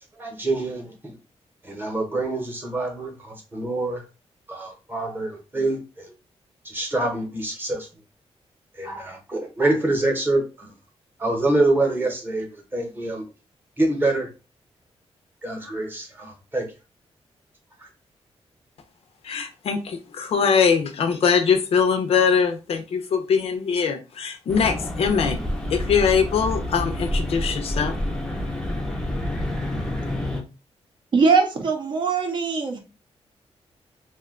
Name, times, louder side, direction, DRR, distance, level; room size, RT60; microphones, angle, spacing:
voice 1, 0.2-0.9 1.6-4.0 4.5-6.1 6.6-7.9 8.8-10.7 11.2-12.5 12.7-13.2 13.8-14.3 15.4-16.7, right 2 dB, 20° right, 0.8 m, -25 dB
voice 2, 19.2-25.4 25.7-27.9, left 6 dB, 65° left, 0.5 m, -22 dB
sound 1, 24.5-30.4, left 1 dB, 5° left, 0.5 m, -28 dB
voice 3, 31.1-32.8, right 4 dB, 45° right, 0.6 m, -21 dB
2.7 x 2.2 x 3.7 m
wide cardioid pair, 170°, 11 cm